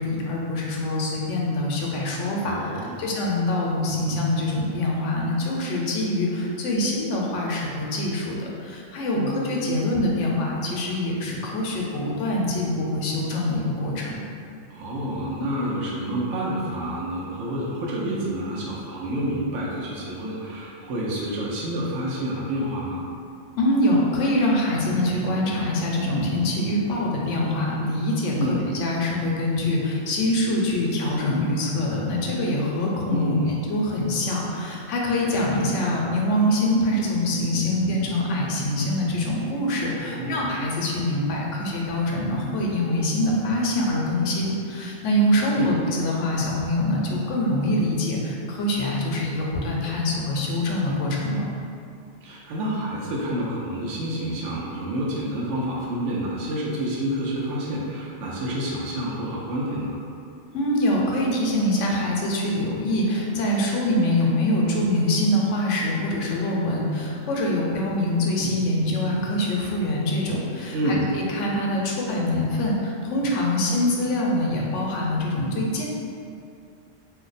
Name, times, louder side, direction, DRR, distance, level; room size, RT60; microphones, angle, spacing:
voice 1, 0.0-2.7 3.0-14.1 23.6-33.3 33.7-51.4 60.5-75.9, left 1 dB, 85° left, -2 dB, 0.9 m, -24 dB
voice 2, 2.4-3.1 9.1-9.3 14.7-23.0 28.3-28.6 33.1-33.6 39.9-40.5 45.5-45.7 52.2-60.0 64.6-64.8 70.7-71.1, right 1 dB, 85° right, -4 dB, 0.9 m, -28 dB
2.6 x 2.2 x 3.9 m, 2.4 s
omnidirectional pair, 1.2 m